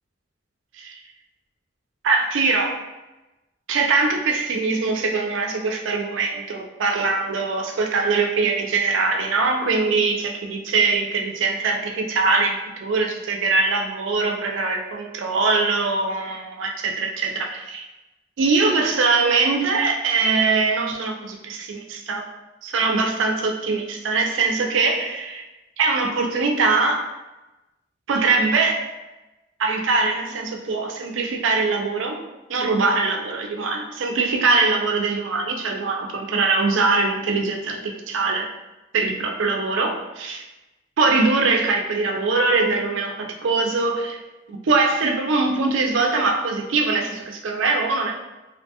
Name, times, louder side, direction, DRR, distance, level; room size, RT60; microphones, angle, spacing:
voice 1, 2.0-2.8 3.7-17.9 18.4-22.2 22.6-25.4 25.8-27.1 28.1-28.8 29.6-32.2 32.5-38.5 38.9-40.4 41.0-44.2 44.5-48.1, right 3 dB, 90° right, 2 dB, 0.4 m, -22 dB
2.7 x 2.2 x 2.8 m, 1.0 s
head